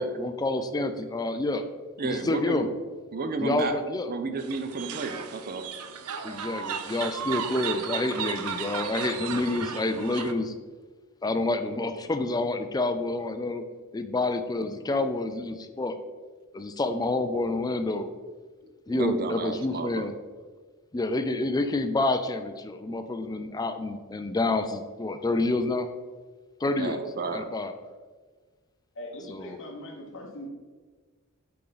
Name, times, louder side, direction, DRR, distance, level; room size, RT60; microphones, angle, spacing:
voice 1, 0.0-1.6 2.0-2.7 3.4-4.1 6.2-10.5 11.2-13.6 13.9-16.0 16.5-18.1 18.9-20.1 20.9-25.9 26.6-27.0 27.3-27.8 29.2-29.6, left 2 dB, 15° left, 8 dB, 0.4 m, -28 dB
voice 2, 2.0-2.7 3.1-3.8 4.1-5.6 18.9-20.1 26.8-27.5, right 3 dB, 45° right, 8 dB, 0.6 m, -31 dB
sound 1, 4.4-10.3, right 7 dB, 85° right, 0.5 m, -35 dB
voice 3, 29.0-30.5, left 1 dB, 60° left, -3 dB, 1.2 m, -40 dB
8.4 x 3.8 x 4.0 m, 1.4 s
head